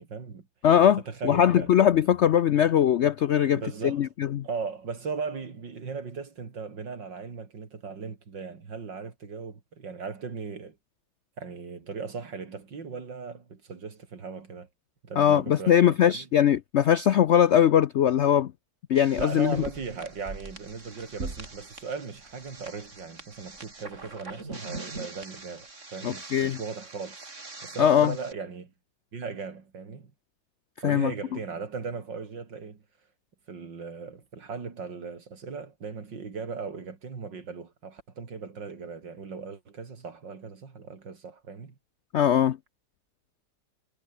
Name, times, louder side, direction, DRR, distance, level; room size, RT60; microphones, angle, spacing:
voice 1, 0.0-0.5 1.0-1.7 3.5-4.1 4.4-10.8 11.4-14.7 15.0-16.3 19.2-27.3 27.6-28.7 29.1-30.1 30.8-32.8 33.5-41.8, right 5 dB, 85° right, 3.5 m, -38 dB
voice 2, 0.6-4.5 15.2-18.5 18.9-19.6 26.0-26.6 27.8-28.1 30.8-31.1 42.1-42.6, left 9 dB, 85° left, 0.6 m, -21 dB
sound 1, 19.0-28.3, right 3 dB, 40° right, 3.8 m, -42 dB
omnidirectional pair, 1.9 m